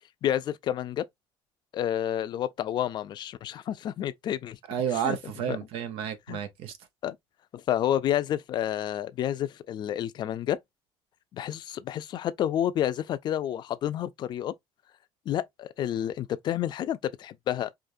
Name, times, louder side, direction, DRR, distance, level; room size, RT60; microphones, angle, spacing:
voice 1, 0.2-1.1 1.7-4.6 4.9-5.2 5.5-5.6 6.3-6.4 7.0-7.2 7.5-10.6 11.3-14.5 15.3-17.7, left 11 dB, 50° left, 0.5 m, -29 dB
voice 2, 4.7-6.7, right 9 dB, 80° right, 0.9 m, -31 dB
4.9 x 2.5 x 2.6 m
cardioid pair, 130°, 9 cm